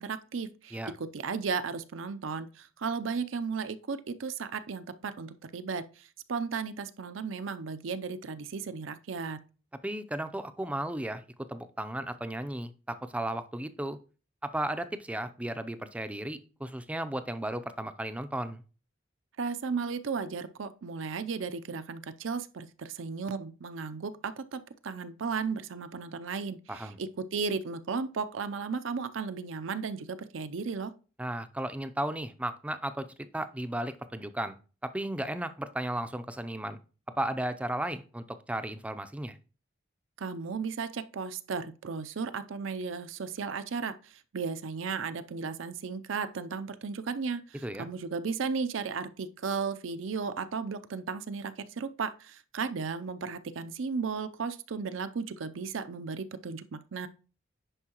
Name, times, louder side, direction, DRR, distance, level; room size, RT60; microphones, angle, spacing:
voice 1, 0.0-9.4 19.4-30.9 40.2-57.1, right 5 dB, 70° right, 0.5 m, -35 dB
voice 2, 9.8-11.2 11.5-14.0 14.4-18.6 26.7-27.0 31.2-33.1 33.3-34.6 34.8-36.8 37.2-39.4 47.6-47.9, right 1 dB, 5° right, 0.5 m, -34 dB
9.8 x 5.4 x 2.9 m
head